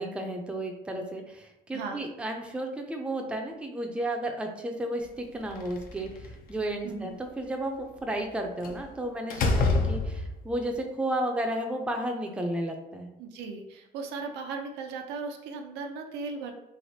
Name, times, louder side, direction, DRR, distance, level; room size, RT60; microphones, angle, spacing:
voice 1, 0.0-13.1, right 1 dB, 5° right, 3 dB, 0.4 m, -33 dB
Slam, 5.5-6.5 8.6-8.9 9.3-10.5, left 3 dB, 60° left, 0.5 m, -27 dB
voice 2, 13.2-16.5, right 4 dB, 90° right, 4 dB, 0.5 m, -37 dB
3.2 x 2.4 x 2.7 m, 0.90 s
cardioid pair, 110°, 17 cm